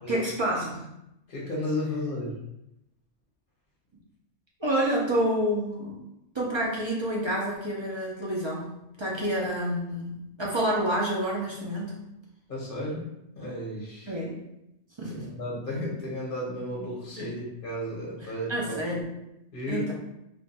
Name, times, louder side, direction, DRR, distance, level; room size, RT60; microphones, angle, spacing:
voice 1, 0.1-0.9 4.6-5.9 6.3-12.0 14.1-14.4 15.0-15.2 17.2-17.3 18.2-19.1 19.7-19.9, right 1 dB, 40° right, -4 dB, 0.4 m, -28 dB
voice 2, 1.3-2.4 12.5-13.0 13.3-14.1 15.1-19.0 19.5-19.9, left 1 dB, 50° left, -5 dB, 0.9 m, -33 dB
2.5 x 2.2 x 4.0 m, 0.85 s
omnidirectional pair, 1.2 m